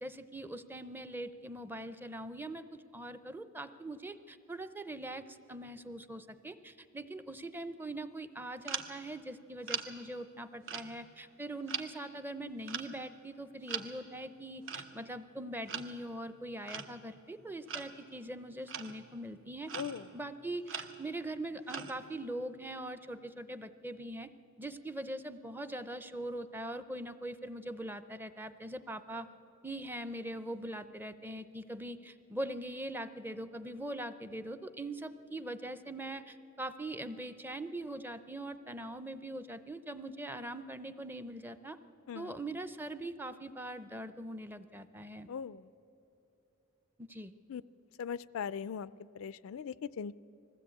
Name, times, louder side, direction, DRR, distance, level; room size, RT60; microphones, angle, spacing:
voice 1, 0.0-2.6 2.9-19.7 20.1-24.3 24.6-29.3 29.6-41.8 42.1-45.3 47.0-47.3, right 1 dB, 10° right, 12 dB, 0.6 m, -42 dB
sound 1, 8.7-9.1 9.6-9.9 10.7-11.4 11.7-11.9 12.7-13.0 13.7-14.0 14.7-14.9 15.7-16.0 16.7-17.1 17.7-17.9 18.7-19.1 19.7-20.1 20.7-21.1 21.7-22.0, right 6 dB, 65° right, 1.1 m, -41 dB
voice 2, 45.3-45.6 47.5-47.6 48.0-48.9 49.2-50.2, left 7 dB, 70° left, 17 dB, 0.4 m, -39 dB
20.5 x 15.5 x 8.4 m, 2.8 s
head